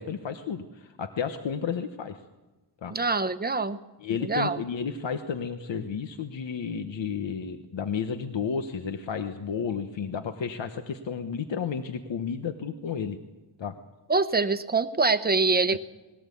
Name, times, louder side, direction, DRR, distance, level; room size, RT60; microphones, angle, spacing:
voice 1, 0.0-2.2 2.8-2.9 4.0-13.2 13.6-13.7 15.7-15.8, left 6 dB, 90° left, 7 dB, 1.1 m, -32 dB
voice 2, 2.9-3.8 4.2-4.6 14.1-15.8, right 3 dB, 20° right, 11 dB, 0.8 m, -24 dB
20.5 x 17.5 x 8.5 m, 1.1 s
wide cardioid pair, 160°, 43 cm